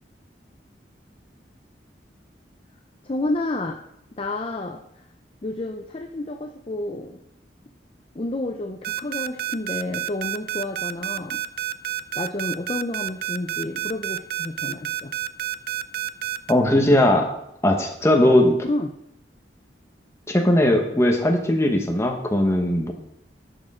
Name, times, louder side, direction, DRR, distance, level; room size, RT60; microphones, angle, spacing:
voice 1, 3.0-3.8 4.2-4.8 5.4-7.2 8.2-11.4 12.2-15.1 18.6-18.9, left 2 dB, 30° left, 4 dB, 0.5 m, -30 dB
sound 1, 8.8-16.5, right 14 dB, 55° right, 0.4 m, -28 dB
voice 2, 16.5-17.3 17.6-18.6 20.3-22.9, left 1 dB, 15° left, 3 dB, 1.1 m, -19 dB
11.0 x 6.2 x 3.7 m, 0.77 s
head